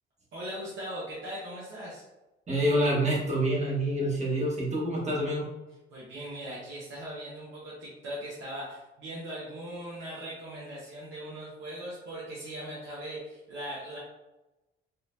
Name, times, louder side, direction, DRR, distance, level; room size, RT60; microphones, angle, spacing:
voice 1, 0.3-2.0 5.9-14.0, right 1 dB, 70° right, -7 dB, 1.1 m, -39 dB
voice 2, 2.5-5.5, right 1 dB, 35° right, -4 dB, 1.4 m, -27 dB
4.0 x 2.7 x 2.6 m, 1.0 s
cardioid pair, 90°, 20 cm